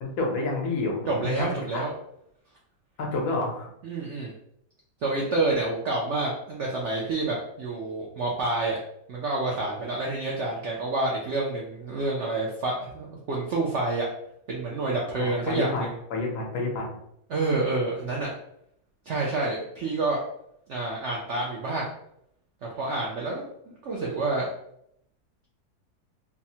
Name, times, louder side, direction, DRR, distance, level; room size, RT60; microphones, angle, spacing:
voice 1, 0.0-1.8 3.0-3.7 15.3-15.8 16.1-17.0, left 2 dB, 75° left, -1 dB, 1.3 m, -29 dB
voice 2, 1.1-1.9 3.8-4.3 5.0-8.8 9.1-14.1 14.5-15.9 17.3-18.3 19.1-20.2 20.7-21.9 22.6-24.5, right 2 dB, 75° right, -3 dB, 0.6 m, -28 dB
3.4 x 2.0 x 2.7 m, 0.74 s
omnidirectional pair, 1.8 m